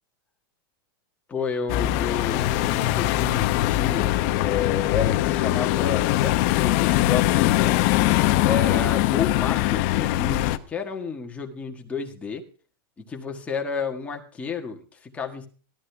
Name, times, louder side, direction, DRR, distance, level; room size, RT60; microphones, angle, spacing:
voice 1, 1.3-7.8 8.4-12.4 13.0-15.5, left 6 dB, 10° left, 2 dB, 1.7 m, -31 dB
sound 1, 1.7-10.6, left 15 dB, 40° left, 0.8 m, -22 dB
14.0 x 13.0 x 3.5 m, 0.39 s
supercardioid pair, 160°, 12 cm